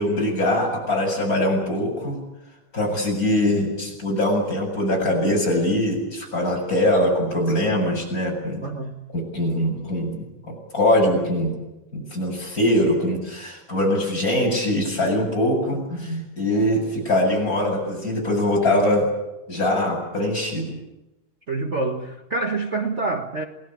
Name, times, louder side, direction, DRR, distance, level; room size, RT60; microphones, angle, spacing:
voice 1, 0.0-2.2 2.7-8.6 9.1-11.6 11.9-19.1 19.5-20.8, left 1 dB, 25° left, 8.3 m, -22 dB
voice 2, 8.6-9.0 21.5-23.4, right 3 dB, 45° right, 0.9 m, -26 dB
28.0 x 20.0 x 8.8 m
omnidirectional pair, 3.6 m